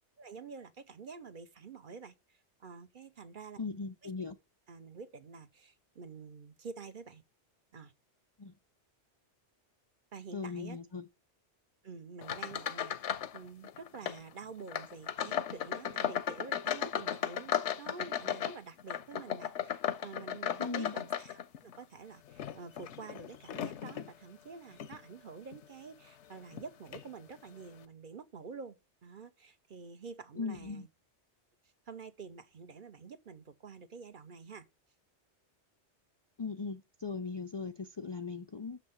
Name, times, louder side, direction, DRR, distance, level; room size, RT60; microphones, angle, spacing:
voice 1, 0.2-3.6 4.0-4.1 4.7-7.2 7.7-7.9 10.1-10.8 11.8-30.9 31.9-34.7, right 5 dB, 50° right, 1.0 m, -48 dB
voice 2, 3.6-4.4 8.4-8.5 10.3-11.0 20.6-20.9 30.4-30.9 36.4-38.8, left 4 dB, 45° left, 0.3 m, -39 dB
sound 1, 12.2-13.4 13.6-14.2 14.7-21.8 22.3-24.1 24.7-25.0 25.5-25.6 26.5-26.6 26.9-27.1, left 9 dB, 85° left, 1.0 m, -36 dB
6.5 x 5.8 x 7.0 m
omnidirectional pair, 1.2 m